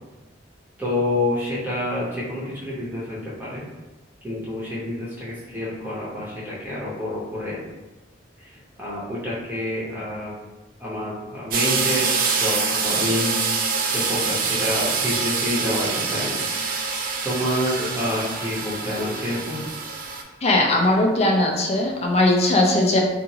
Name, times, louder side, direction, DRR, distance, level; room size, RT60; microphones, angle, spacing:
voice 1, 0.8-3.6 4.2-7.6 8.4-10.3 10.8-12.1 12.4-13.6 13.9-16.4 17.2-19.6, left 1 dB, 10° right, -8 dB, 0.7 m, -28 dB
sound 1, 11.5-20.2, right 4 dB, 50° right, 0.3 m, -25 dB
voice 2, 20.4-23.0, left 1 dB, 35° left, 1 dB, 0.4 m, -19 dB
2.8 x 2.4 x 2.7 m, 1.1 s
head